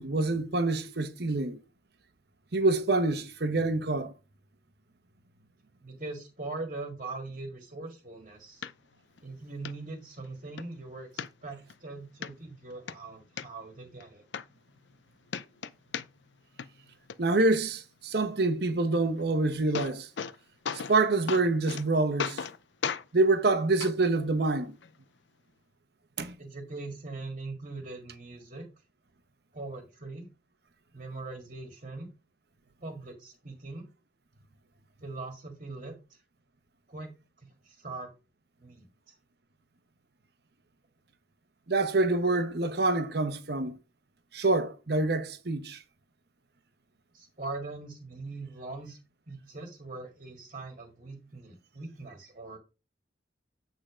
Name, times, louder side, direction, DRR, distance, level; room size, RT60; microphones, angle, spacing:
voice 1, 0.0-1.6 2.5-4.1 17.2-20.1 20.7-22.4 23.1-24.8 26.2-26.4 41.7-43.8 44.3-45.8, right 2 dB, 65° right, 1.0 m, -26 dB
voice 2, 5.8-8.6 9.2-14.2 26.4-28.7 29.5-30.3 30.9-32.1 32.8-33.9 35.0-36.2 36.9-37.1 37.4-38.1 38.6-39.2 47.1-49.0 49.3-52.6, right 3 dB, 45° right, 1.8 m, -41 dB
sound 1, 8.6-8.7 9.2-9.3 9.6-9.7 10.2-10.7 11.2-11.8 12.2-12.3 12.7-13.4 14.0-14.1 14.3-15.0 15.3-16.3 16.6-17.1 19.2-19.3 19.5-20.4 20.6-21.0 21.3-21.8 22.2-22.6 22.8-23.0 23.8-23.9 24.8-24.9, left 7 dB, 90° left, 0.5 m, -35 dB
8.8 x 3.9 x 5.0 m
head